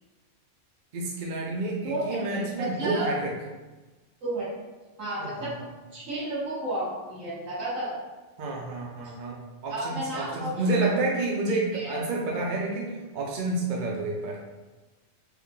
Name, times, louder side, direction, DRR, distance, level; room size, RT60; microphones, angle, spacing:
voice 1, 0.9-3.3 5.2-5.7 8.4-9.4 9.6-14.4, right 2 dB, 55° right, -2 dB, 0.5 m, -29 dB
voice 2, 1.8-3.1 4.2-4.5 5.0-5.5 5.9-8.0 9.7-11.0 11.5-12.0, right 1 dB, 90° right, -7 dB, 1.4 m, -32 dB
3.4 x 2.5 x 3.6 m, 1.2 s
omnidirectional pair, 1.3 m